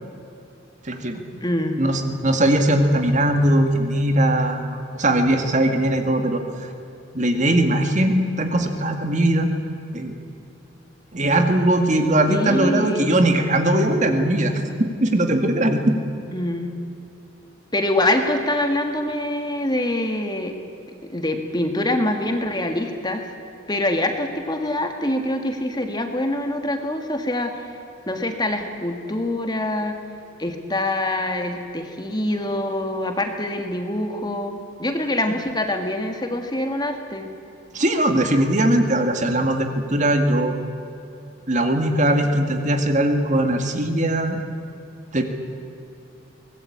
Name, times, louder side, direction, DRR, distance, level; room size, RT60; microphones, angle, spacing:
voice 1, 0.8-1.4 1.8-6.4 7.1-9.5 9.9-10.1 11.1-14.6 15.0-15.9 37.7-40.6 41.5-44.4 45.1-45.2, right 1 dB, 40° right, 5 dB, 2.0 m, -20 dB
voice 2, 1.4-1.8 12.3-13.2 16.3-16.7 17.7-20.5 21.1-23.3 23.7-27.6 28.1-30.0 30.4-37.3, left 1 dB, 20° left, 5 dB, 1.9 m, -25 dB
24.0 x 19.5 x 8.7 m, 2.8 s
head